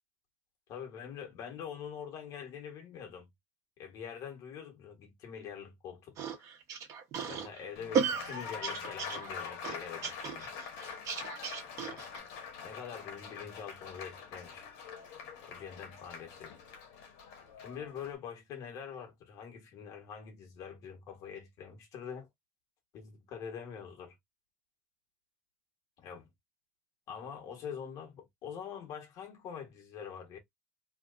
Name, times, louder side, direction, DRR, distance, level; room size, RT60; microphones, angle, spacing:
voice 1, 0.7-3.3 3.8-6.4 7.3-10.5 11.9-12.0 12.6-14.7 15.5-16.6 17.6-22.3 22.9-24.2 26.0-26.3 27.1-30.4, left 7 dB, 50° left, 1.4 m, -45 dB
sound 1, 6.2-12.2, right 6 dB, 45° right, 1.1 m, -35 dB
Applause, 7.8-18.2, left 6 dB, 70° left, 1.4 m, -45 dB
3.1 x 2.8 x 2.5 m
supercardioid pair, 120°, 7 cm